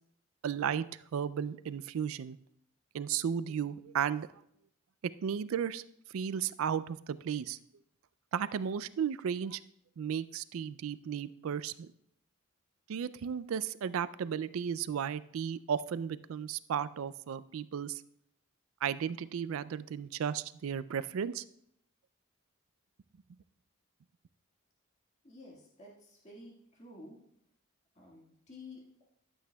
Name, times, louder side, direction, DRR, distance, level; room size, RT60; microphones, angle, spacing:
voice 1, 0.4-0.9 1.1-2.4 2.9-4.3 5.2-5.8 6.1-7.6 8.3-9.6 10.0-11.7 12.9-18.0 18.8-21.4, right 8 dB, 75° right, 16 dB, 0.3 m, -34 dB
voice 2, 25.2-27.2 28.0-29.0, left 2 dB, 30° left, -4 dB, 1.7 m, -52 dB
12.0 x 8.1 x 2.2 m, 0.72 s
head